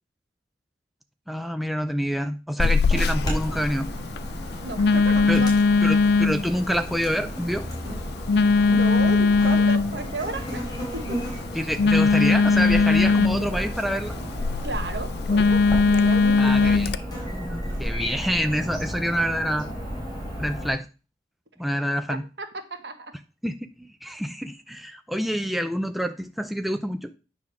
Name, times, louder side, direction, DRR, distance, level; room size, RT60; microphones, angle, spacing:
voice 1, 1.3-3.9 5.3-5.4 5.8-7.7 11.5-14.2 16.4-16.9 17.8-19.7 20.4-20.9 21.6-22.2 23.4-27.1, equal, ahead, 0.4 m, -27 dB
Telephone, 2.6-17.0, left 4 dB, 65° left, 0.4 m, -21 dB
Chirp tweet / Buzz, 2.9-20.7, equal, 25° left, 3.4 m, -33 dB
voice 2, 4.6-5.6 7.8-8.2 8.7-11.3 13.3-13.6 14.6-16.8 22.4-23.2, right 2 dB, 70° right, 1.3 m, -34 dB
9.5 x 3.5 x 6.0 m
head